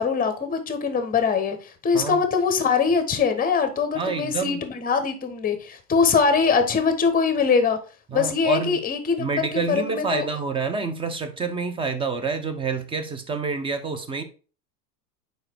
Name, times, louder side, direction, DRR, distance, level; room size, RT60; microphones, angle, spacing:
voice 1, 0.0-7.8 8.1-10.3, left 5 dB, 20° left, 1.1 m, -22 dB
voice 2, 3.9-4.6 8.1-8.8 9.2-14.2, right 4 dB, 10° right, 0.7 m, -28 dB
4.9 x 4.6 x 4.5 m
hypercardioid pair, 105°, 48 cm